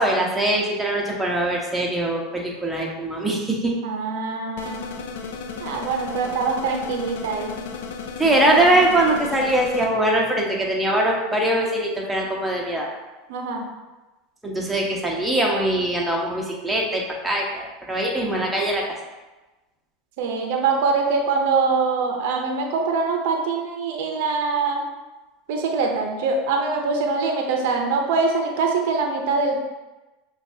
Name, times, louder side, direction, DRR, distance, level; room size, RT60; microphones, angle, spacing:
voice 1, 0.0-3.7 8.2-12.9 14.4-18.8, right 1 dB, 5° right, -2 dB, 0.9 m, -22 dB
voice 2, 3.8-4.9 5.6-7.5 13.3-13.7 20.2-24.8 25.5-29.6, right 4 dB, 70° right, 2 dB, 0.6 m, -23 dB
sound 1, 4.6-9.9, left 5 dB, 80° left, 0.4 m, -34 dB
5.8 x 2.4 x 2.8 m, 1.1 s
hypercardioid pair, 105°, 0 cm